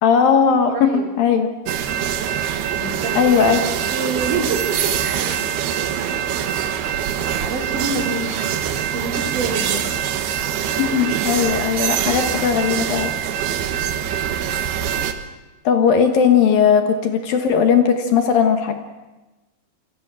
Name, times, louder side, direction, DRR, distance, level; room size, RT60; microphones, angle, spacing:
voice 1, 0.0-1.5 3.2-3.6 10.8-13.2 15.6-18.8, left 7 dB, 65° left, 6 dB, 2.9 m, -17 dB
voice 2, 0.7-1.1 2.8-3.3 3.9-5.2 7.4-8.5 8.9-9.9, right 3 dB, 50° right, 1 dB, 4.8 m, -27 dB
sound 1, 1.7-15.1, right 9 dB, 70° right, 3.3 m, -24 dB
28.0 x 24.0 x 6.4 m, 1.1 s
omnidirectional pair, 4.9 m